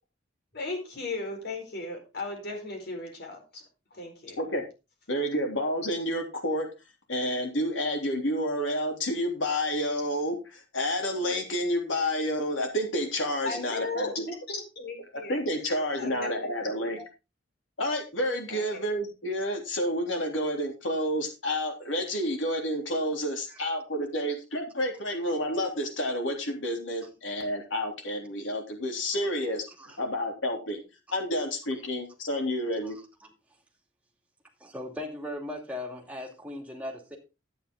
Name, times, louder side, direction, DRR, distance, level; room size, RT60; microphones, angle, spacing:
voice 1, 0.5-3.6 3.9-4.4 13.4-15.4 16.0-16.5 16.8-17.0 18.5-18.8, left 2 dB, 55° left, 3 dB, 4.5 m, -36 dB
voice 2, 5.1-6.7 7.1-14.0 15.3-17.0 17.8-30.8 31.1-33.0, equal, 80° left, 2 dB, 3.2 m, -29 dB
voice 3, 34.6-37.2, left 1 dB, 5° right, 0 dB, 2.6 m, -38 dB
11.0 x 9.3 x 3.7 m, 0.28 s
head